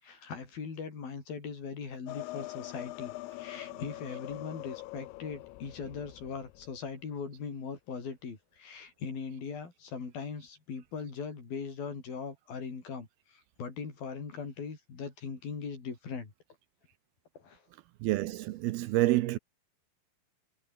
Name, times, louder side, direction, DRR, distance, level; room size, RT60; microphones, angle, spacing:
voice 1, 0.0-16.3 17.3-17.6, left 5 dB, 65° left, 6.9 m, -40 dB
sound 1, 2.1-6.9, left 19 dB, 85° left, 2.7 m, -43 dB
voice 2, 18.0-19.4, right 17 dB, 80° right, 2.6 m, -28 dB
omnidirectional pair, 4.6 m